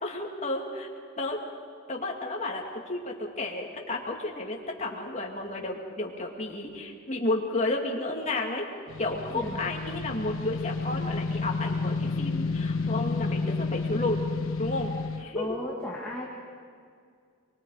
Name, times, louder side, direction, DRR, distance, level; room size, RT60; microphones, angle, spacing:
voice 1, 0.0-0.9 1.2-1.4 1.9-8.7 9.0-14.2 14.6-14.9 15.2-15.6, left 2 dB, 35° left, 0 dB, 2.5 m, -32 dB
sound 1, 8.9-15.2, left 3 dB, 85° left, 1.2 m, -30 dB
voice 2, 15.4-16.3, left 1 dB, 5° left, -5 dB, 2.0 m, -35 dB
24.0 x 23.5 x 5.0 m, 2.2 s
head